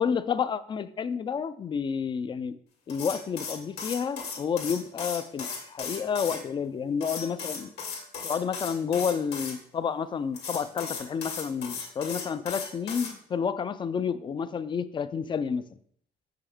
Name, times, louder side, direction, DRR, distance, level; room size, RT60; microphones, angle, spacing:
voice 1, 0.0-2.6 2.9-7.7 8.2-15.6, left 6 dB, 30° left, 15 dB, 0.4 m, -30 dB
sound 1, 2.9-6.4 7.0-9.5 10.3-13.1, left 5 dB, 80° left, 2.0 m, -36 dB
6.1 x 5.6 x 3.6 m, 0.64 s
cardioid pair, 110°, 17 cm